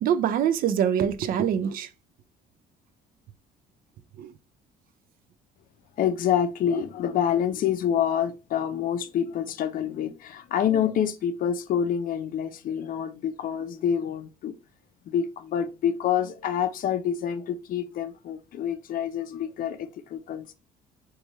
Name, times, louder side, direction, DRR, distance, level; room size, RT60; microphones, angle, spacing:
voice 1, 0.0-1.9 4.2-4.3, right 9 dB, 60° right, 0.4 m, -24 dB
voice 2, 6.0-14.5 15.1-20.5, left 9 dB, 55° left, 0.5 m, -27 dB
3.0 x 2.3 x 4.0 m
cardioid pair, 110°, 17 cm